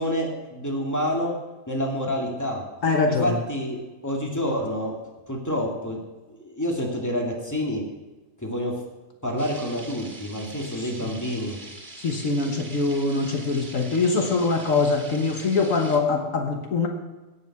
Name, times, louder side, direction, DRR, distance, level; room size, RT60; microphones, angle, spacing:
voice 1, 0.0-1.3 1.7-2.6 3.2-3.8 4.0-4.9 5.3-6.0 6.3-7.8 8.4-8.8 9.2-11.6, equal, 10° left, -1 dB, 2.3 m, -28 dB
voice 2, 2.8-3.4 10.8-11.1 12.0-16.9, left 3 dB, 70° left, 4 dB, 1.6 m, -23 dB
sound 1, 9.4-16.0, right 2 dB, 45° right, 2.2 m, -43 dB
16.5 x 7.0 x 5.9 m, 1.2 s
omnidirectional pair, 1.4 m